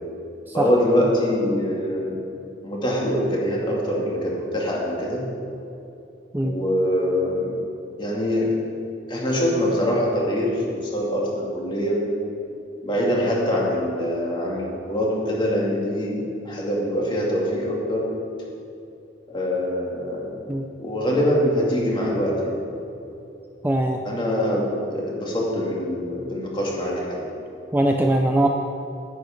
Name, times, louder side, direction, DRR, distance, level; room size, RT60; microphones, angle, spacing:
voice 1, 0.5-2.2 2.6-5.2 6.4-7.5 8.0-8.5 9.1-12.0 12.8-18.0 19.3-20.3 20.8-22.5 24.0-27.2, equal, 25° left, -4 dB, 2.5 m, -24 dB
voice 2, 23.6-24.0 27.7-28.5, right 1 dB, 10° right, 3 dB, 0.5 m, -21 dB
10.5 x 10.5 x 5.2 m, 2.8 s
head